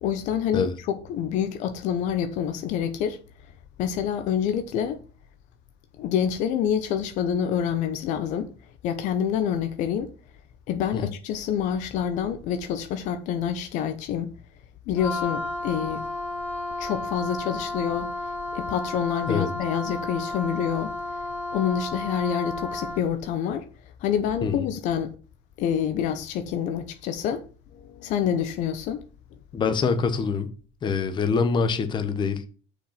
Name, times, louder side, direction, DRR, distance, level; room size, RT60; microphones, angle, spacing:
voice 1, 0.0-3.2 3.8-5.0 6.0-8.5 8.8-10.1 10.7-14.3 14.9-16.0 16.8-18.1 18.5-20.9 21.5-23.7 24.0-25.1 25.6-27.4 27.7-29.0, left 8 dB, 60° left, 1.0 m, -27 dB
Wind instrument woodwind instrument, 15.0-23.1, left 2 dB, 15° left, 3.4 m, -32 dB
voice 2, 29.5-30.5 30.8-32.5, left 5 dB, 35° left, 1.3 m, -25 dB
6.6 x 5.2 x 5.9 m
supercardioid pair, 110°, 14 cm